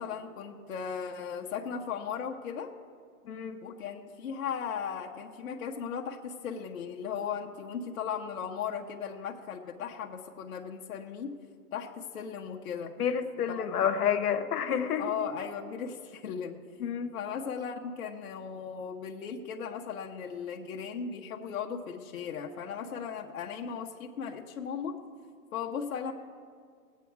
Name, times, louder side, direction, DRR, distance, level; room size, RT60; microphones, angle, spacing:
voice 1, 0.0-2.7 3.6-11.4 11.7-12.9 13.5-13.9 15.0-16.6 17.1-25.0 25.5-26.1, left 7 dB, 65° left, 1 dB, 1.0 m, -37 dB
voice 2, 3.3-3.6 13.0-15.0 16.8-17.1, left 8 dB, 85° left, 7 dB, 1.2 m, -29 dB
19.0 x 8.3 x 4.7 m, 2.1 s
hypercardioid pair, 175°, 44 cm